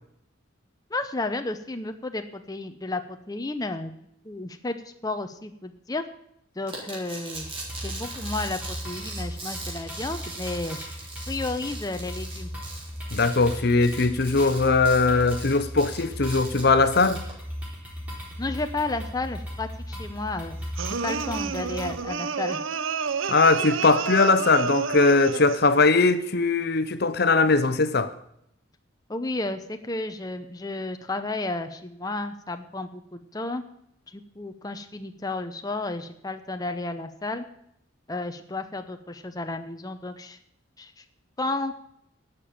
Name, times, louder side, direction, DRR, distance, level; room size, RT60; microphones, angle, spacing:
voice 1, 0.9-3.9 4.2-6.0 6.6-7.5 7.8-10.9 11.3-12.5 18.4-20.6 20.8-22.6 29.1-33.6 34.1-37.5 38.1-40.4 40.8-41.0 41.4-41.8, left 2 dB, 20° left, 0.7 m, -32 dB
sound 1, 6.7-17.3, right 2 dB, 25° right, 3.6 m, -40 dB
sound 2, 7.4-22.0, equal, 5° right, 3.8 m, -37 dB
voice 2, 13.1-17.2 23.3-28.1, left 3 dB, 55° left, 0.8 m, -20 dB
sound 3, 20.8-25.7, right 6 dB, 80° right, 0.6 m, -29 dB
12.0 x 6.8 x 8.8 m
head